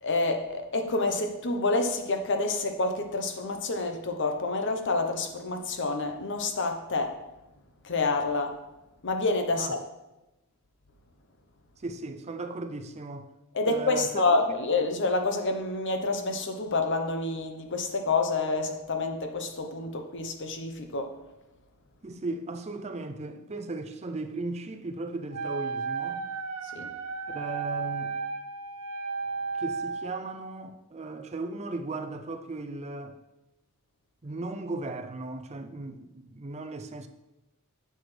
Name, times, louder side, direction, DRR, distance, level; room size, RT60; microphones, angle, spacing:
voice 1, 0.0-7.2 7.8-8.6 9.0-9.8 13.5-21.1 26.7-26.9, left 3 dB, 55° left, 0.9 m, -28 dB
voice 2, 11.8-13.3 13.6-14.2 22.0-26.3 27.3-28.2 29.6-33.2 34.2-37.1, right 2 dB, 30° right, 0.5 m, -36 dB
Wind instrument woodwind instrument, 25.3-30.1, right 5 dB, 75° right, 0.7 m, -34 dB
9.6 x 6.8 x 3.3 m
head